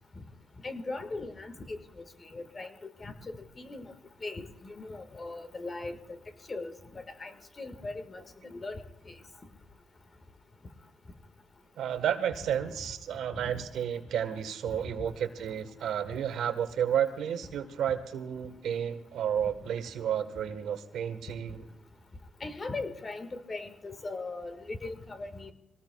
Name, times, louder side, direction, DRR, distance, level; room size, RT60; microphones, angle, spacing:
voice 1, 0.6-1.8 2.3-2.7 3.0-3.8 4.2-6.2 6.5-7.3 7.6-8.2 8.5-8.8 22.4-25.5, left 3 dB, 30° left, 8 dB, 1.7 m, -39 dB
voice 2, 11.8-21.7, right 9 dB, 75° right, 8 dB, 1.4 m, -32 dB
23.5 x 18.0 x 2.3 m, 0.89 s
cardioid pair, 90°, 0 cm